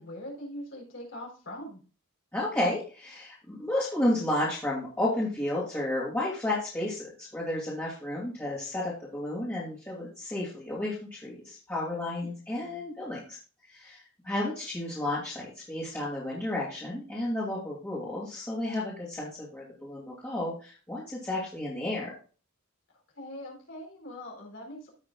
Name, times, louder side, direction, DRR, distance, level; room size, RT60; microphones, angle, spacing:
voice 1, 0.0-1.8 12.2-12.4 23.2-24.9, left 1 dB, 60° left, -1 dB, 4.1 m, -42 dB
voice 2, 2.3-13.4 13.7-22.1, left 1 dB, 10° left, -7 dB, 2.4 m, -32 dB
15.5 x 5.9 x 2.4 m, 0.36 s
head